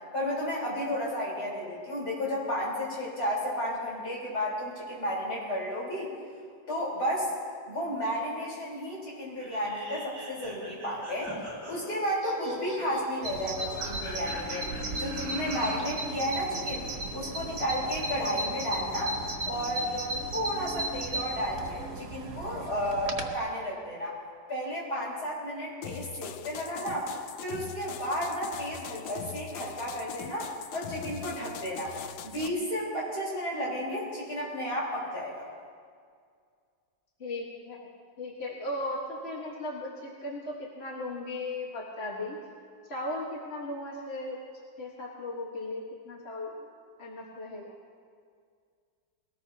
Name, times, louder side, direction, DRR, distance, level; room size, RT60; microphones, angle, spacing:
voice 1, 0.1-6.1 6.7-7.3 7.7-11.3 11.7-14.7 15.0-16.8 17.1-19.2 19.5-24.1 24.5-27.1 27.4-32.0 32.2-35.5, equal, 60° left, -5 dB, 5.0 m, -32 dB
sound 1, 9.4-15.9, right 1 dB, 10° right, 4.7 m, -41 dB
Bird vocalization bird call bird song, 13.2-23.4, right 2 dB, 60° right, 1.8 m, -35 dB
sound 2, 25.8-32.5, left 9 dB, 85° left, 1.4 m, -42 dB
voice 2, 37.2-37.9 38.2-42.4 42.9-44.4 44.8-46.6 47.0-47.7, left 2 dB, 35° left, -3 dB, 1.7 m, -37 dB
21.5 x 18.5 x 2.9 m, 2.1 s
omnidirectional pair, 2.0 m